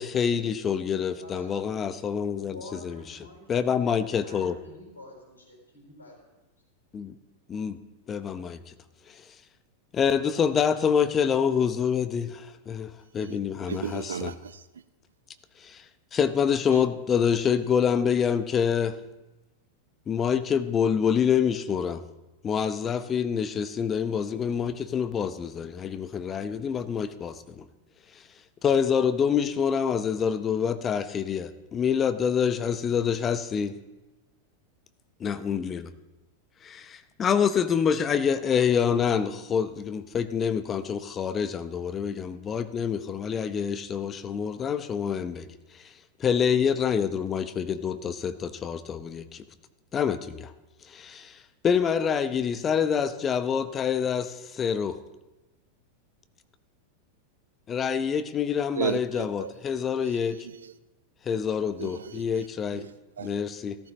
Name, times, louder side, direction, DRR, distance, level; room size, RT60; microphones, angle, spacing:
voice 1, 0.0-2.6 2.8-3.0 3.5-4.6 6.9-7.1 7.5-7.8 8.1-8.7 9.9-14.3 15.6-15.8 16.1-18.9 20.1-22.0 22.4-27.6 28.6-33.8 35.2-35.9 36.6-45.5 46.2-49.4 49.9-50.5 50.9-51.4 51.6-55.0 57.7-60.4 61.3-62.8 63.2-63.8, left 7 dB, 25° left, 12 dB, 0.8 m, -26 dB
voice 2, 1.0-1.7 2.3-6.2, left 1 dB, 80° left, -2 dB, 4.6 m, -48 dB
voice 3, 13.6-14.6 16.7-16.8 58.7-59.5 60.0-60.7 61.8-63.3, right 7 dB, 70° right, 14 dB, 0.6 m, -35 dB
14.5 x 13.5 x 3.2 m, 1.0 s
figure-of-eight pair, 90°, 0 cm